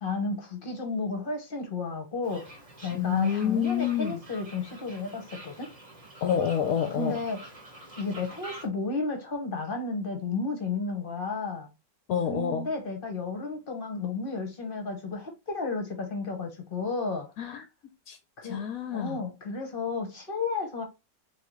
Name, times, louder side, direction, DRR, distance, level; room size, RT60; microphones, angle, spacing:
voice 1, 0.0-2.5 2.8-5.7 6.9-7.5 8.0-11.7 12.3-17.3 18.4-18.6 18.9-20.8, left 3 dB, 40° left, 1.0 m, -32 dB
Fowl, 2.2-8.7, right 1 dB, 25° right, 1.1 m, -47 dB
voice 2, 2.9-4.2 6.2-7.2 12.1-12.7 17.4-17.6 18.1-18.2 18.4-19.2, left 8 dB, 65° left, 1.0 m, -27 dB
3.9 x 3.7 x 3.1 m
omnidirectional pair, 1.8 m